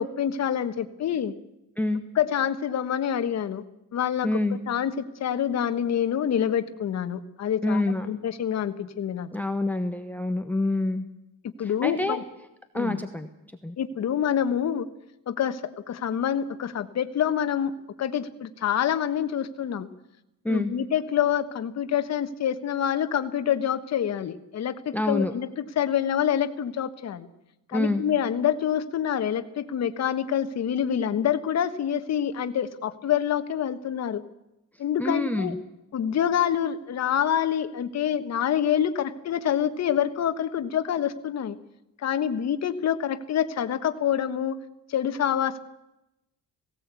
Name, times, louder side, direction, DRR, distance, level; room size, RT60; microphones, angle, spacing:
voice 1, 0.0-1.3 2.1-3.6 3.9-7.8 8.1-9.3 11.6-12.2 12.7-13.0 13.8-14.9 15.3-15.6 15.9-17.7 18.0-19.9 20.5-27.3 27.7-34.2 34.8-35.5 35.9-41.6 42.0-44.6 44.9-45.6, left 9 dB, 50° left, 9 dB, 1.4 m, -26 dB
voice 2, 4.2-4.6 7.6-8.1 9.3-11.1 11.6-12.2 12.7-13.3 13.6-13.8 20.4-20.7 24.9-25.3 27.7-28.0 35.0-35.6, left 2 dB, 5° left, 9 dB, 1.0 m, -26 dB
18.0 x 17.5 x 8.3 m, 0.90 s
cardioid pair, 150°, 33 cm